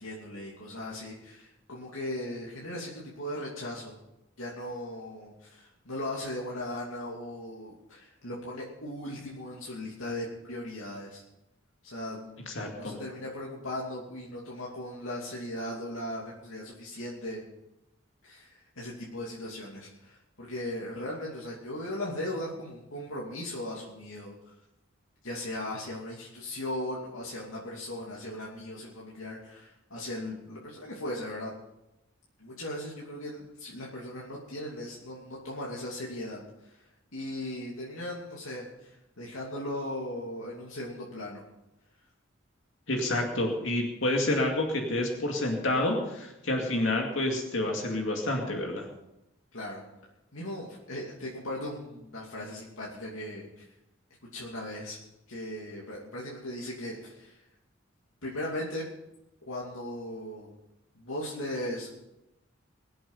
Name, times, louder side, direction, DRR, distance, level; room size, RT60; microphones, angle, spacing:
voice 1, 0.0-3.9 4.4-11.2 11.8-17.4 18.2-24.3 25.2-31.5 32.4-36.7 37.1-41.4 49.5-49.8 50.3-53.6 54.3-55.0 55.3-57.4 58.2-58.9 59.5-60.5 60.9-62.0, left 1 dB, 85° left, -4 dB, 2.7 m, -38 dB
voice 2, 12.5-13.0 42.9-48.9, left 1 dB, 70° left, 1 dB, 2.3 m, -29 dB
22.0 x 7.9 x 5.6 m, 0.89 s
head